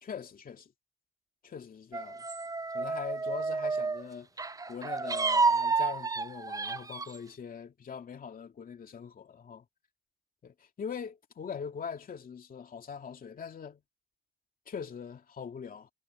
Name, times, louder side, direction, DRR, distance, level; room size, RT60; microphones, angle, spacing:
voice 1, 0.0-0.7 1.4-2.3 2.7-4.3 4.7-9.7 10.4-13.8 14.7-15.9, left 7 dB, 45° left, 2.6 m, -42 dB
sound 1, 1.9-4.1 4.4-7.2, right 4 dB, 15° right, 0.6 m, -30 dB
cardioid pair, 90°, 20 cm